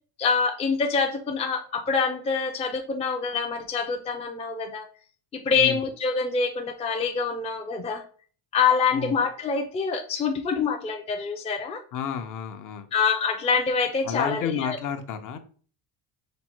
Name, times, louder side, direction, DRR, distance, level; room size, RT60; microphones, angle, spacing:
voice 1, 0.2-4.9 5.3-8.0 8.5-11.8 12.9-14.8, left 5 dB, 15° left, 3 dB, 0.4 m, -25 dB
voice 2, 11.9-12.9 14.0-15.4, left 7 dB, 50° left, 8 dB, 0.7 m, -31 dB
5.2 x 2.1 x 4.4 m, 0.43 s
cardioid pair, 145°, 40 cm